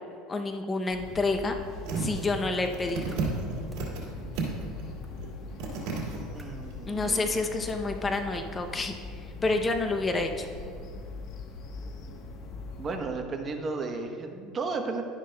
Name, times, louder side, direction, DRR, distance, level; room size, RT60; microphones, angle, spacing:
voice 1, 0.3-1.5 2.0-3.2 6.9-10.5, left 3 dB, 20° left, 5 dB, 0.6 m, -29 dB
sound 1, 0.9-13.0, left 3 dB, 55° left, 1.1 m, -41 dB
sound 2, 1.8-2.2 2.6-4.1 4.4-4.8 5.2-5.3 5.6-6.2 6.7-6.8, right 4 dB, 75° right, 2.1 m, -32 dB
sound 3, 3.0-3.2 3.7-3.8 4.3-4.4 5.0-5.1 5.7-5.9 6.3-6.4 7.0-7.2 7.7-7.8 8.3-8.4, right 1 dB, 5° right, 1.3 m, -50 dB
voice 2, 6.3-7.2 12.8-15.0, right 3 dB, 30° right, 5 dB, 0.9 m, -34 dB
11.5 x 10.0 x 2.2 m, 2.3 s
supercardioid pair, 125°, 0 cm